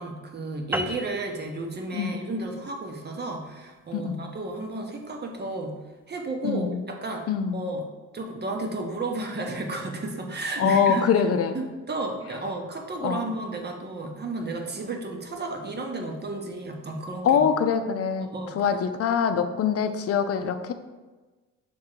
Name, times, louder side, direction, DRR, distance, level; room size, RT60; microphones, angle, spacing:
voice 1, 0.0-5.7 6.1-7.8 8.1-11.1 11.5-17.4 18.3-18.8, right 2 dB, 35° right, 3 dB, 1.0 m, -33 dB
sound 1, 0.7-5.5, right 1 dB, 5° right, 0.3 m, -37 dB
voice 2, 3.9-4.3 6.4-6.8 7.3-7.6 10.6-11.6 13.0-13.3 17.2-20.7, left 7 dB, 50° left, 9 dB, 0.6 m, -24 dB
6.2 x 3.7 x 4.5 m, 1.2 s
cardioid pair, 90°, 30 cm